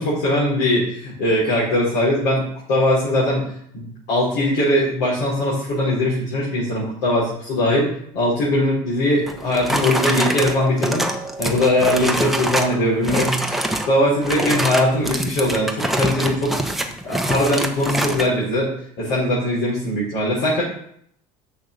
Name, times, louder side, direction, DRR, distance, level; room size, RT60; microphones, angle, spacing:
voice 1, 0.0-11.0 11.4-13.6 13.9-16.5 17.0-18.7 19.0-20.6, left 1 dB, 65° left, -7 dB, 4.6 m, -20 dB
sound 1, 9.3-12.8 13.0-13.9 14.2-18.3, right 1 dB, ahead, 1.2 m, -24 dB
6.7 x 6.4 x 6.7 m, 0.67 s
supercardioid pair, 85°, 18 cm